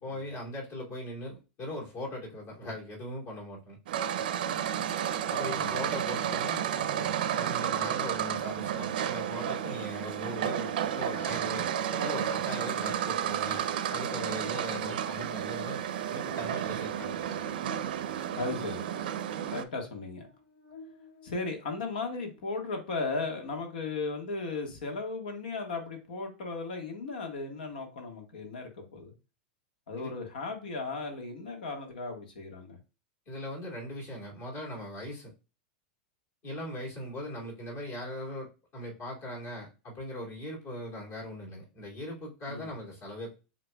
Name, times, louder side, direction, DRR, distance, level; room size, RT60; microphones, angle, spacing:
voice 1, 0.0-3.8 5.3-15.8 16.1-17.4 19.5-19.6 30.0-30.1 33.3-35.3 36.4-43.3, left 1 dB, 50° left, -2 dB, 2.6 m, -40 dB
sound 1, 3.9-19.6, right 9 dB, 80° right, 0.5 m, -32 dB
voice 2, 5.5-5.8 18.3-18.8 19.5-20.3 21.2-29.1 29.9-32.8 42.5-42.7, left 3 dB, 85° left, 3 dB, 1.4 m, -36 dB
Buzz, 13.3-22.8, left 5 dB, 70° left, 2.5 m, -56 dB
7.6 x 2.9 x 2.2 m, 0.31 s
supercardioid pair, 140°, 5 cm